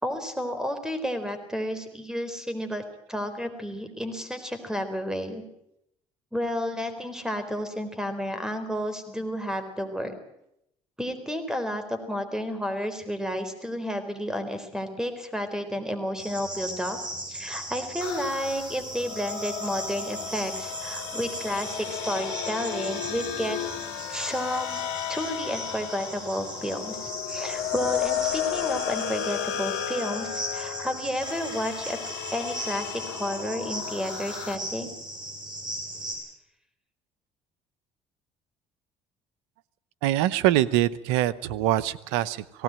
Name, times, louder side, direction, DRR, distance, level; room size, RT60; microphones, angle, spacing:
voice 1, 0.0-5.4 6.3-10.1 11.0-17.0 17.3-23.6 24.1-24.8 25.1-32.0 32.3-34.9, equal, 5° right, 8 dB, 4.0 m, -31 dB
Cricket, 16.2-36.1, right 1 dB, 30° right, 7.5 m, -38 dB
sound 1, 18.0-34.6, left 11 dB, 90° left, 1.2 m, -34 dB
voice 2, 40.0-42.6, right 13 dB, 85° right, 19 dB, 0.8 m, -24 dB
18.0 x 17.0 x 8.9 m, 0.80 s
supercardioid pair, 75°, 14 cm